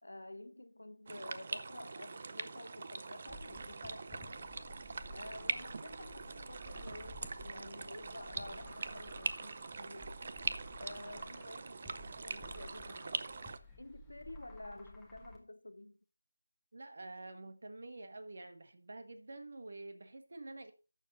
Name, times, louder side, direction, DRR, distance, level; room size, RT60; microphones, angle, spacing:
voice 1, 0.0-4.5 5.1-10.2 10.8-13.3 13.8-16.0, left 1 dB, 70° left, 1.2 m, -50 dB
sound 1, 1.1-13.6, right 4 dB, 35° right, 0.7 m, -43 dB
sound 2, 3.3-15.4, left 1 dB, 5° left, 1.3 m, -54 dB
voice 2, 16.7-20.7, right 2 dB, 50° right, 1.5 m, -48 dB
12.0 x 7.0 x 4.0 m
figure-of-eight pair, 165°, 0 cm